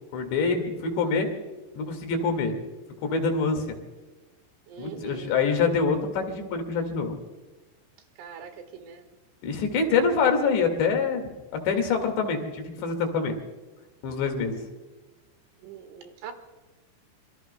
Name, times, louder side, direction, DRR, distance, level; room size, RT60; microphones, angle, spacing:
voice 1, 0.1-1.3 1.8-2.6 3.0-3.8 4.8-7.2 9.4-11.3 11.6-13.3 14.0-14.6, left 5 dB, 65° left, 5 dB, 4.1 m, -25 dB
voice 2, 4.7-5.4 8.2-9.1 15.6-16.3, right 7 dB, 75° right, 7 dB, 3.9 m, -42 dB
25.5 x 23.5 x 2.2 m, 1.2 s
omnidirectional pair, 5.7 m